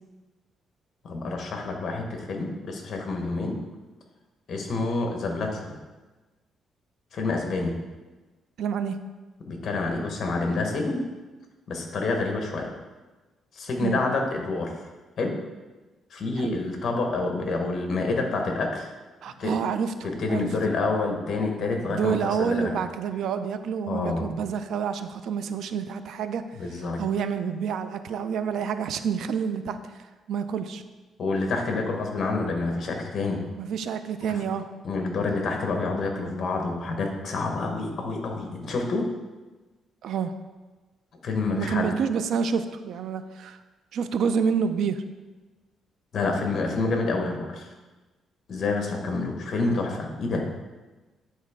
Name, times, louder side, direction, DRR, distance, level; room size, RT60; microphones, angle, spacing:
voice 1, 1.0-3.5 4.5-5.8 7.1-7.7 9.5-11.0 11.7-12.7 13.5-14.7 15.2-15.3 16.1-18.9 19.4-19.5 20.2-22.7 23.9-24.3 26.5-27.0 31.2-33.4 34.3-34.4 34.8-39.1 41.2-41.9 46.1-47.7 48.5-50.4, left 3 dB, 45° left, 2 dB, 1.2 m, -28 dB
voice 2, 8.6-9.0 13.8-14.0 16.4-16.6 19.2-19.9 20.3-20.5 21.9-26.4 27.0-29.8 30.3-30.8 33.6-34.6 40.0-40.3 41.6-43.6 43.9-45.0, right 6 dB, 70° right, 10 dB, 0.4 m, -28 dB
9.5 x 4.1 x 3.6 m, 1.2 s
cardioid pair, 135°, 0 cm